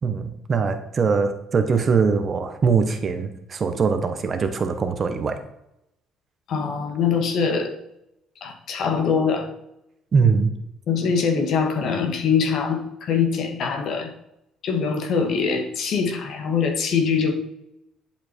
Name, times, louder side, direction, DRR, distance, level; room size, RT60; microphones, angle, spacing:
voice 1, 0.0-5.4 10.1-10.5, right 5 dB, 35° right, 7 dB, 1.3 m, -22 dB
voice 2, 6.5-7.7 8.4-9.5 10.9-14.1 14.6-17.3, left 6 dB, 55° left, 5 dB, 2.1 m, -23 dB
11.0 x 7.5 x 4.6 m, 0.83 s
cardioid pair, 130°, 0 cm